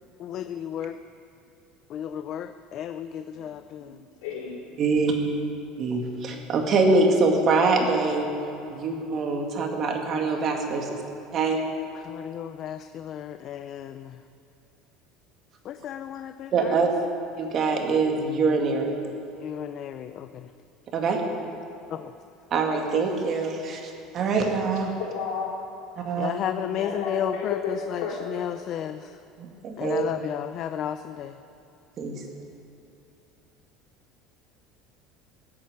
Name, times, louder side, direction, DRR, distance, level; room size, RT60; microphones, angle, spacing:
voice 1, 0.2-1.0 1.9-3.9 12.0-14.2 15.6-16.8 19.4-20.5 21.9-22.1 26.2-29.2 29.8-31.3, left 10 dB, 40° left, 10 dB, 0.4 m, -33 dB
voice 2, 3.9-4.8 25.0-25.5 26.7-27.7 28.0-28.1, left 6 dB, 85° left, -4 dB, 4.5 m, -33 dB
voice 3, 4.8-5.1 5.8-8.3 8.7-11.0 11.3-11.6 16.5-16.9 17.4-19.0 20.9-21.2 22.5-24.9 26.0-26.4 29.4-30.0 32.0-32.2, right 4 dB, 35° right, 2 dB, 2.0 m, -24 dB
15.0 x 8.6 x 9.4 m, 2.8 s
cardioid pair, 150°, 0 cm